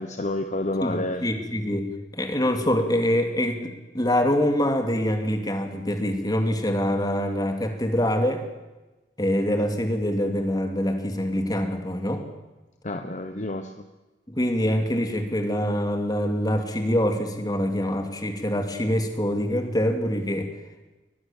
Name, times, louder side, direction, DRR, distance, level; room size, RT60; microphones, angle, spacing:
voice 1, 0.0-1.2 12.8-13.7, left 1 dB, 40° left, 7 dB, 1.1 m, -29 dB
voice 2, 0.8-1.9 2.1-8.4 9.2-12.2 14.3-20.5, equal, 20° left, 5 dB, 2.7 m, -25 dB
22.5 x 20.0 x 7.4 m, 1.1 s
head